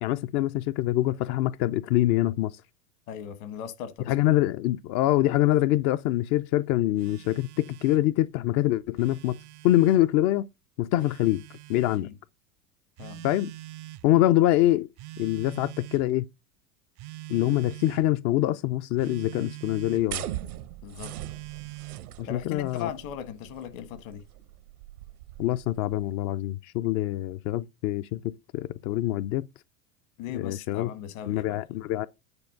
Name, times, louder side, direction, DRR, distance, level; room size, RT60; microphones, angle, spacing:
voice 1, 0.0-2.6 4.1-9.4 9.6-10.5 10.8-11.4 11.7-12.1 13.2-13.5 14.0-14.9 15.2-16.2 17.3-20.2 22.2-22.9 25.4-29.5 30.3-30.9 31.3-32.1, left 14 dB, 40° left, 0.4 m, -25 dB
voice 2, 3.1-4.1 11.9-12.2 13.0-13.2 20.8-21.1 22.3-24.2 30.2-31.8, left 9 dB, 60° left, 1.4 m, -38 dB
Telephone, 7.0-8.1 8.8-10.0 11.0-12.0 13.0-14.1 15.0-16.1 17.0-18.1 19.0-20.1 21.0-22.1, right 17 dB, 40° right, 0.5 m, -43 dB
sound 1, 20.1-26.1, right 13 dB, 75° right, 0.9 m, -40 dB
9.7 x 4.4 x 5.5 m
hypercardioid pair, 85°, 45 cm